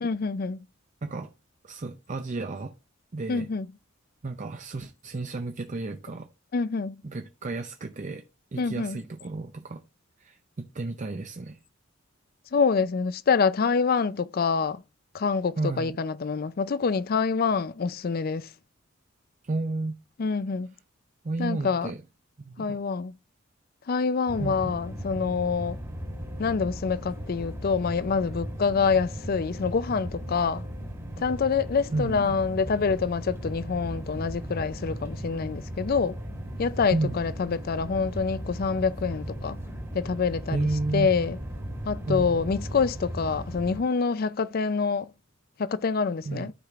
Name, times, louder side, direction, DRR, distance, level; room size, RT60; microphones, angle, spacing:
voice 1, 0.0-0.6 3.3-3.7 6.5-7.0 8.6-9.0 12.5-14.8 15.1-18.5 20.2-20.7 21.4-21.9 22.6-23.1 23.9-25.8 26.4-30.6 31.2-36.2 36.6-39.6 39.9-40.7 40.9-41.4 41.8-45.1 45.6-46.5, left 5 dB, 45° left, 0.4 m, -26 dB
voice 2, 1.0-1.3 1.6-2.7 3.1-3.5 4.2-6.3 7.0-8.2 8.5-9.8 10.2-11.6 15.6-16.0 19.4-20.0 21.2-22.0 22.4-22.8 24.4-24.7 31.9-32.4 36.9-37.2 40.5-41.1 42.1-42.5 46.3-46.5, right 3 dB, 35° right, 0.5 m, -32 dB
sound 1, 24.3-43.8, equal, 15° right, 1.6 m, -37 dB
13.5 x 5.0 x 2.4 m
head